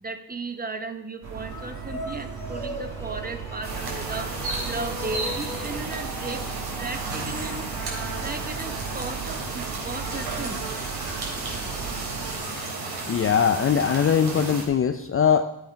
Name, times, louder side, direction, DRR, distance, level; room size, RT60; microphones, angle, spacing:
voice 1, 0.0-4.3 4.6-6.4 6.8-7.7 8.2-10.6, right 3 dB, 20° right, 8 dB, 0.9 m, -35 dB
sound 1, 1.2-12.3, right 6 dB, 35° right, 2.1 m, -37 dB
sound 2, 1.4-9.9, left 1 dB, 5° left, 1.9 m, -41 dB
sound 3, 3.6-14.6, right 3 dB, 50° right, 3.7 m, -33 dB
voice 2, 13.1-15.4, left 7 dB, 30° left, 8 dB, 0.5 m, -21 dB
11.5 x 8.6 x 5.2 m, 0.84 s
cardioid pair, 115°, 47 cm